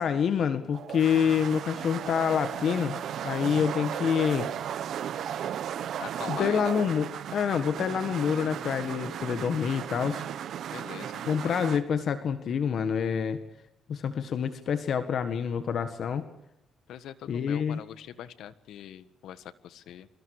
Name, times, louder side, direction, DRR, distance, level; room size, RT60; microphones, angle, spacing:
voice 1, 0.0-4.5 6.3-10.2 11.3-13.4 13.9-16.2 17.3-17.8, left 7 dB, 60° left, 10 dB, 1.7 m, -27 dB
sound 1, 0.7-11.8, right 9 dB, 70° right, 1.2 m, -35 dB
voice 2, 6.0-6.9 10.7-11.5 16.9-20.1, left 10 dB, 80° left, 14 dB, 1.5 m, -42 dB
26.0 x 25.0 x 4.9 m, 0.83 s
cardioid pair, 90°, 0 cm